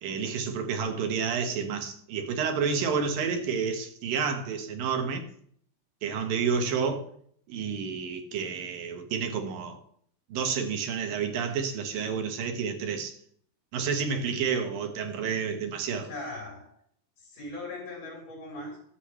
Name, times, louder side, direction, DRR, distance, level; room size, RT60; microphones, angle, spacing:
voice 1, 0.0-5.2 6.0-7.1 7.5-9.8 10.3-13.2 13.7-16.1, right 6 dB, 70° right, 3.2 m, -30 dB
voice 2, 15.9-16.7 17.2-18.8, left 2 dB, 85° left, 6.0 m, -39 dB
21.5 x 8.3 x 3.3 m
omnidirectional pair, 4.2 m